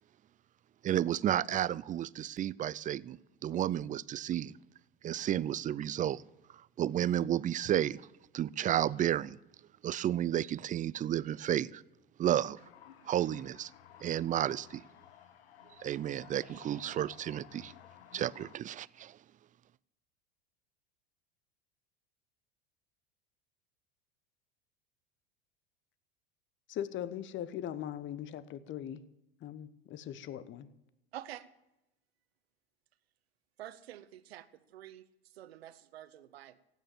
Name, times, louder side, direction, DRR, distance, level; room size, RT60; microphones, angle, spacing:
voice 1, 0.8-4.5 5.0-6.2 6.8-8.0 8.3-9.4 9.8-11.8 12.2-12.6 13.1-13.7 14.0-14.8 15.8-17.7 18.1-19.2, right 11 dB, 25° right, 22 dB, 0.4 m, -32 dB
sound 1, 12.6-18.6, left 11 dB, 80° left, 1.1 m, -56 dB
voice 2, 26.7-29.0 29.4-30.7, left 10 dB, 40° left, 16 dB, 1.0 m, -40 dB
voice 3, 31.1-31.5 33.6-36.6, right 12 dB, 80° right, 15 dB, 1.0 m, -48 dB
15.5 x 9.3 x 7.5 m, 0.93 s
hypercardioid pair, 85°, 30 cm